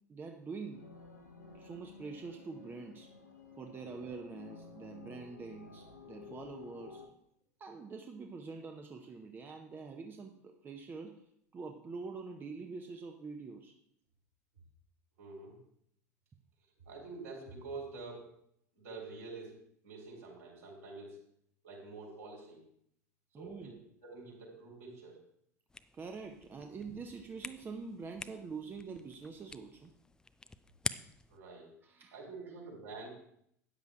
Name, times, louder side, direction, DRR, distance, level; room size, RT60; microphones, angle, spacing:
voice 1, 0.1-0.9 1.5-3.1 3.6-7.0 7.6-11.2 11.5-13.7 23.3-23.8 25.9-29.9 31.8-32.1, right 4 dB, 20° right, 4 dB, 0.8 m, -45 dB
sound 1, 0.7-7.1, left 5 dB, 80° left, 1.4 m, -53 dB
voice 2, 15.2-15.5 16.9-18.3 18.7-19.5 19.8-21.2 21.6-22.6 23.3-25.2 31.3-31.7 32.1-33.1, right 3 dB, 65° right, -3 dB, 3.7 m, -47 dB
sound 2, 25.7-31.4, left 3 dB, 10° left, 0.4 m, -46 dB
13.0 x 9.3 x 2.4 m, 0.72 s
figure-of-eight pair, 75°, 9 cm